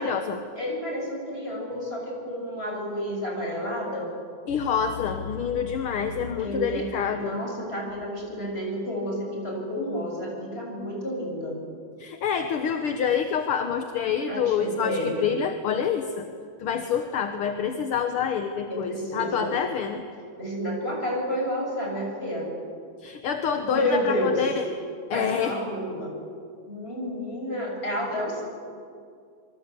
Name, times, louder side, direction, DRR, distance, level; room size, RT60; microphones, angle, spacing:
voice 1, 0.0-0.4 4.5-7.4 12.0-16.3 16.6-20.0 23.0-24.7 25.1-25.6, left 7 dB, 60° left, 7 dB, 1.7 m, -27 dB
voice 2, 0.6-4.1 6.4-11.6 14.3-15.1 18.7-19.5 20.4-22.5 23.7-24.3 25.1-26.1 26.7-28.4, equal, 20° left, 0 dB, 7.1 m, -30 dB
26.5 x 23.5 x 8.3 m, 2.3 s
omnidirectional pair, 3.4 m